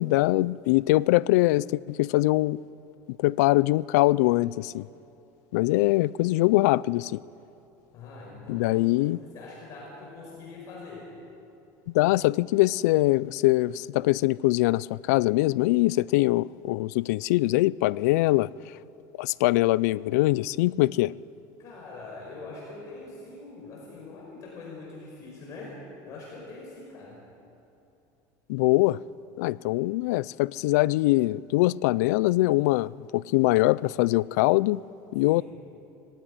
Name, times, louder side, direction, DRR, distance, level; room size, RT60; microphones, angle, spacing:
voice 1, 0.0-2.6 3.2-4.9 5.5-7.2 8.5-9.2 11.9-18.5 19.2-21.1 28.5-29.0 29.4-34.8 35.1-35.4, left 19 dB, 90° left, 0.4 m, -23 dB
voice 2, 7.9-9.1 9.3-11.1 21.6-27.2 35.2-35.4, left 3 dB, 40° left, 5.2 m, -43 dB
19.0 x 16.0 x 10.0 m
cardioid pair, 155°, 9 cm